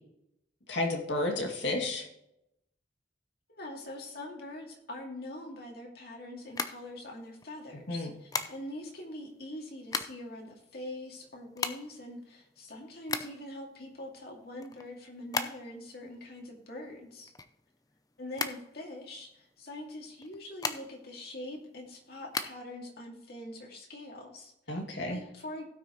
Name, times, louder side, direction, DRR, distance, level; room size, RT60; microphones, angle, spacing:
voice 1, 0.7-2.1 7.9-8.1 24.7-25.2, left 2 dB, 85° left, 1 dB, 2.5 m, -31 dB
voice 2, 3.5-17.3 18.2-24.7 25.1-25.7, left 1 dB, 60° left, 0 dB, 2.4 m, -43 dB
sound 1, 6.4-7.5 8.3-8.9 9.6-10.4 10.7-10.8 11.0-13.6 14.0-15.9 16.2-18.0 18.3-19.3 20.1-21.2 21.5-22.5, left 4 dB, 20° left, 0.6 m, -36 dB
17.0 x 6.3 x 3.1 m, 0.84 s
head